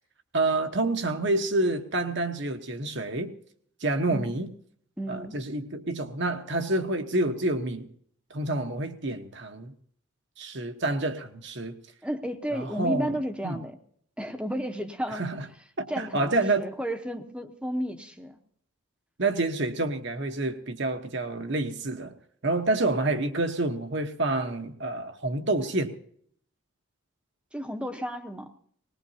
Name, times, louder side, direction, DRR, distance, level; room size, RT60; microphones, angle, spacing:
voice 1, 0.3-3.3 3.8-4.5 5.1-7.9 8.3-9.7 10.4-11.8 12.5-13.2 13.4-13.6 15.1-15.5 15.8-16.7 19.2-22.2 22.4-26.0, right 2 dB, 55° right, 6 dB, 1.2 m, -28 dB
voice 2, 4.1-4.4 5.0-5.4 12.0-13.8 14.2-15.3 15.9-18.4 22.9-23.0 27.5-28.5, equal, 5° right, 6 dB, 0.9 m, -33 dB
19.5 x 19.5 x 2.8 m, 0.62 s
head